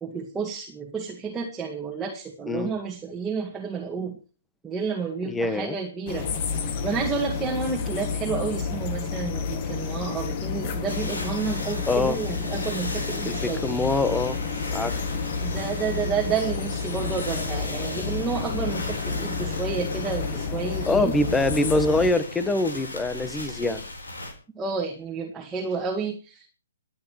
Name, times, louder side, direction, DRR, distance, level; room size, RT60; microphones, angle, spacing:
voice 1, 0.0-4.2 4.6-6.3 6.6-13.7 15.4-21.2 24.5-26.5, right 5 dB, 10° right, -2 dB, 2.0 m, -30 dB
voice 2, 5.2-5.8 11.9-12.2 13.2-14.4 14.7-15.0 20.9-23.8, left 2 dB, 10° left, 14 dB, 1.3 m, -24 dB
sound 1, 6.1-22.1, left 5 dB, 40° left, 2.1 m, -30 dB
sound 2, 10.9-24.3, left 2 dB, 80° left, 4.2 m, -37 dB
28.5 x 9.5 x 3.2 m, 0.36 s
figure-of-eight pair, 130°, 0 cm